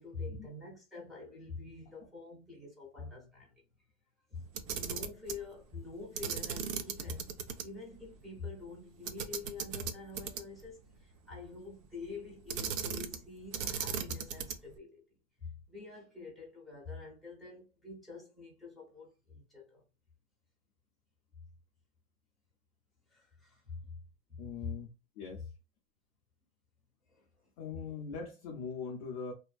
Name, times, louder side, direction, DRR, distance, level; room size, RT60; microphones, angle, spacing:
voice 1, 0.0-3.5 4.3-4.5 4.7-7.3 7.6-15.0 15.7-19.8 23.1-23.8 24.3-24.4 27.1-27.2, left 4 dB, ahead, 0.7 m, -46 dB
Camera, 4.5-5.4 6.2-7.6 8.0-8.1 9.1-10.7 12.5-13.3 13.5-14.7, right 7 dB, 65° right, 0.6 m, -37 dB
voice 2, 24.4-24.9 25.2-25.5 27.6-29.3, left 5 dB, 30° left, 0.3 m, -41 dB
2.5 x 2.2 x 2.3 m
hypercardioid pair, 130°, 41 cm